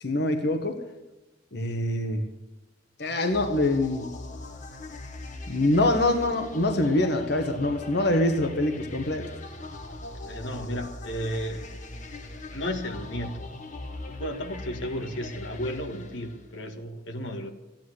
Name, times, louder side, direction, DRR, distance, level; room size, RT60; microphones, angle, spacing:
voice 1, 0.0-0.8 1.5-2.2 3.0-4.1 5.5-9.2, left 1 dB, 60° left, 5 dB, 1.7 m, -24 dB
sound 1, 3.0-16.7, left 2 dB, 45° left, 1.8 m, -40 dB
voice 2, 10.3-11.7 12.5-13.5 14.2-17.5, equal, 85° left, 4 dB, 1.9 m, -33 dB
15.0 x 10.5 x 8.0 m, 1.0 s
head